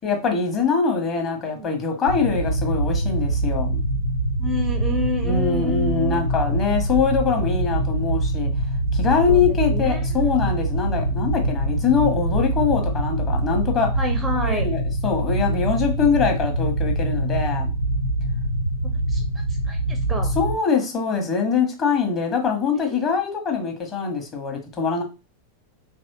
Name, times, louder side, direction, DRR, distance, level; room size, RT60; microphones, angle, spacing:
voice 1, 0.0-3.8 5.2-8.5 8.9-13.9 14.4-17.7 20.3-25.0, left 6 dB, 30° left, 1.0 m, -23 dB
sound 1, 2.1-20.5, right 1 dB, 85° left, 0.4 m, -24 dB
voice 2, 4.4-6.3 9.3-10.3 14.0-14.7 19.1-20.3 22.7-23.2, left 1 dB, 10° right, 0.5 m, -30 dB
3.0 x 2.6 x 2.7 m
figure-of-eight pair, 90°, 0 cm